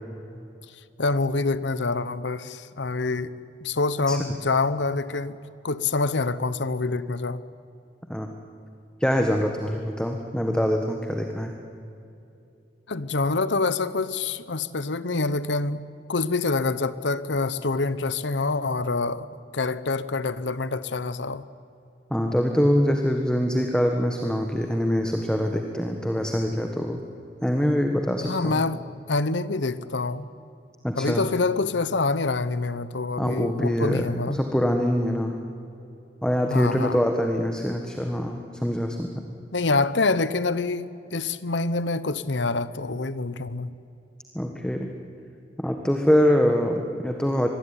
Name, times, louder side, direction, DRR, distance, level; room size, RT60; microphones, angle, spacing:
voice 1, 1.0-3.3 3.6-5.4 5.6-7.4 12.9-15.8 16.1-19.3 19.5-21.4 28.2-28.8 29.1-30.3 31.0-34.4 36.5-37.0 39.5-43.7, left 3 dB, 85° left, 15 dB, 0.9 m, -26 dB
voice 2, 9.0-11.5 22.1-27.0 27.4-28.6 30.8-31.3 33.2-35.4 36.2-39.1 44.3-44.9 45.6-47.5, equal, 5° left, 3 dB, 1.5 m, -24 dB
24.5 x 21.5 x 9.9 m, 2.7 s
head